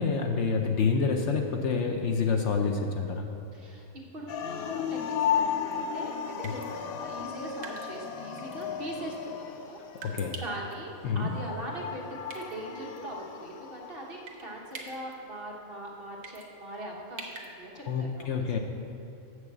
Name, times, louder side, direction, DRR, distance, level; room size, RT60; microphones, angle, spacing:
voice 1, 0.0-3.3 10.0-10.4 11.0-11.3 17.9-18.6, left 5 dB, 65° left, 3 dB, 0.9 m, -27 dB
voice 2, 3.5-3.9 4.1-18.5, right 1 dB, 45° right, -2 dB, 1.3 m, -41 dB
sound 1, 4.3-14.4, left 8 dB, 90° left, 1.1 m, -35 dB
sound 2, 5.7-5.9 6.4-6.7 7.6-8.0 8.4-8.6 10.0-10.7 12.3-12.6 13.0-13.1 14.3-14.4 14.7-15.1 16.2-16.5 17.2-17.5, right 4 dB, 65° right, 1.4 m, -43 dB
7.5 x 6.4 x 7.3 m, 2.7 s
omnidirectional pair, 1.5 m